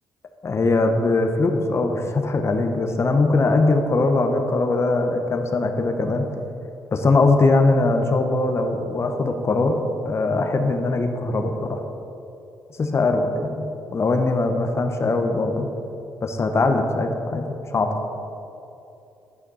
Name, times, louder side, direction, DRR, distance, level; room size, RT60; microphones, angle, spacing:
voice 1, 0.4-6.3 6.9-11.8 12.8-15.7 16.2-17.9, left 3 dB, 40° left, 4 dB, 0.9 m, -21 dB
10.5 x 5.9 x 4.1 m, 2.8 s
cardioid pair, 75°, 7 cm